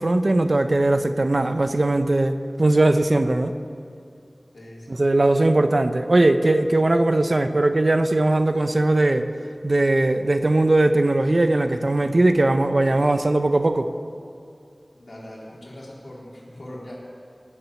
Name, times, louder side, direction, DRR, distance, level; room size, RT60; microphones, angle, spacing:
voice 1, 0.0-3.5 4.9-9.3 9.6-13.9, right 2 dB, 60° right, 9 dB, 0.8 m, -19 dB
voice 2, 4.5-5.0 5.4-5.7 15.0-17.0, left 1 dB, 75° left, -5 dB, 4.0 m, -41 dB
18.5 x 7.5 x 8.3 m, 2.5 s
wide cardioid pair, 45°, 0 cm